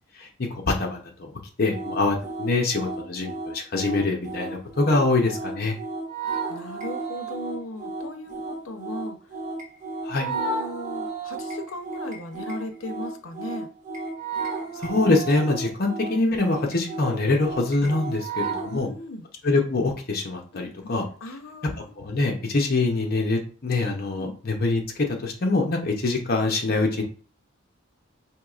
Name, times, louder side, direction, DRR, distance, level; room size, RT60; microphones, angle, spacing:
voice 1, 0.7-1.0 1.6-5.8 10.1-10.3 14.8-18.9 19.4-21.0 22.0-24.8 25.2-27.0, left 3 dB, 50° left, 1 dB, 0.7 m, -24 dB
sound 1, 1.7-18.8, right 3 dB, 40° right, 1.2 m, -33 dB
voice 2, 6.5-9.2 10.2-13.7 18.6-19.3 20.5-20.9 21.2-21.9 24.2-24.4, left 1 dB, 85° left, 7 dB, 0.6 m, -37 dB
4.6 x 3.0 x 2.4 m, 0.39 s
head